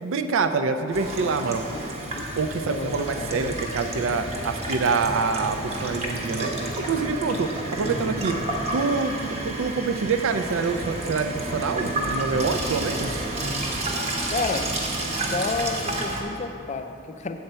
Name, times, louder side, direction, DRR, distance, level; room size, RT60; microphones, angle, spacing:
voice 1, 0.0-1.6 2.4-8.3 8.7-13.3, right 4 dB, 65° right, 8 dB, 0.4 m, -26 dB
Water tap faucet / Sink (filling or washing), 0.9-16.2, right 1 dB, 30° right, 0.7 m, -30 dB
voice 2, 1.7-2.2 2.6-3.6 14.3-14.7 15.0-17.4, left 3 dB, 30° left, 7 dB, 0.4 m, -31 dB
7.9 x 4.3 x 6.7 m, 2.8 s
head